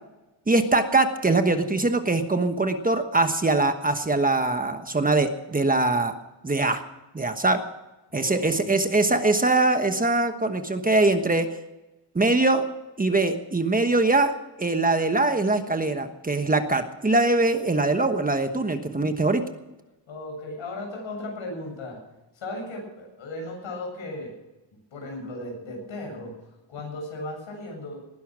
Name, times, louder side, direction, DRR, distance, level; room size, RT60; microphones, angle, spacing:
voice 1, 0.5-6.1 6.4-6.8 7.1-7.6 8.1-11.5 12.1-12.6 13.0-14.3 14.6-19.4, right 2 dB, 20° right, 7 dB, 1.2 m, -22 dB
voice 2, 8.1-9.1 20.1-22.0 22.3-24.3 24.9-26.3 26.7-28.0, left 2 dB, 90° left, 1 dB, 8.0 m, -36 dB
19.5 x 11.5 x 6.2 m, 1.0 s
wide cardioid pair, 160°, 46 cm